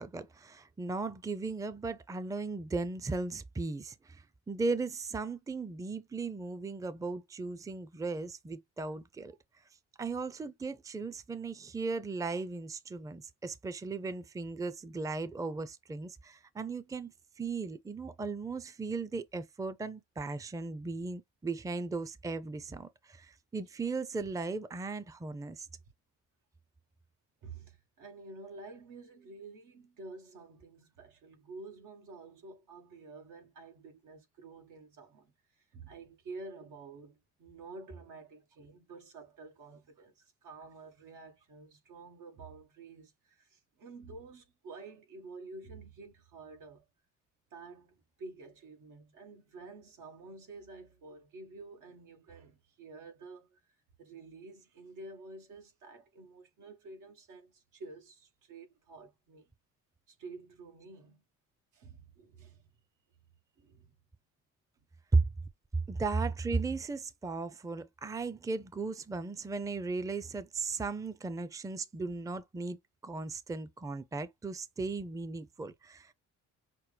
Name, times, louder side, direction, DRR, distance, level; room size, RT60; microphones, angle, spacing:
voice 1, 0.0-9.4 10.0-25.7 65.1-65.2 65.9-76.1, right 3 dB, 10° right, 0.5 m, -36 dB
voice 2, 27.4-46.8 47.5-53.6 54.0-59.5 60.1-61.2 61.7-62.6 63.6-63.9, right 3 dB, 80° right, 1.4 m, -50 dB
6.0 x 2.1 x 3.2 m
cardioid pair, 90°, 30 cm